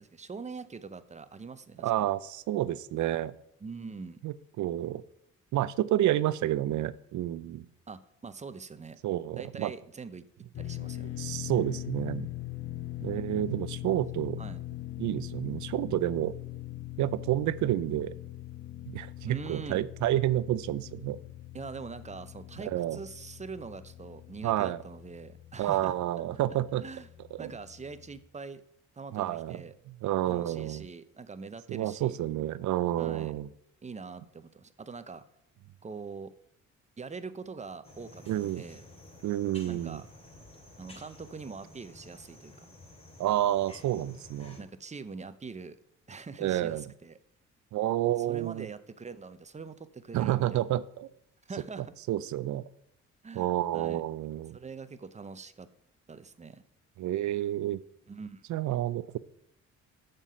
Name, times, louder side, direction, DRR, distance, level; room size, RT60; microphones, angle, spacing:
voice 1, 0.0-2.1 3.6-4.2 7.9-9.0 9.4-10.3 10.5-11.2 14.4-14.6 19.3-19.9 21.5-25.9 26.8-27.1 27.4-28.6 28.9-29.7 30.3-32.2 33.0-33.3 33.8-35.2 35.8-36.3 37.0-38.8 39.7-40.0 40.8-42.7 44.6-45.8 46.1-47.2 48.3-50.7 51.5-51.9 53.2-54.0 54.5-55.7 56.1-56.6 58.1-58.4, right 4 dB, 25° right, 12 dB, 0.7 m, -43 dB
voice 2, 1.8-3.3 4.2-5.0 5.5-7.7 9.0-9.7 11.2-12.3 13.0-14.4 15.0-16.3 17.0-18.1 18.9-21.2 22.6-23.0 24.4-24.8 25.6-26.8 27.4-27.5 29.1-29.6 30.0-30.8 31.7-33.5 38.3-38.6 39.2-40.0 43.2-44.6 46.4-46.9 47.7-48.7 50.1-51.1 52.1-52.6 53.3-54.6 57.0-57.8 58.5-59.2, right 13 dB, 70° right, 17 dB, 0.5 m, -29 dB
sound 1, 10.5-28.2, left 15 dB, 45° left, 0.8 m, -42 dB
sound 2, 37.8-44.6, left 2 dB, 20° left, 2.7 m, -52 dB
7.3 x 6.8 x 5.6 m, 0.77 s
cardioid pair, 90°, 30 cm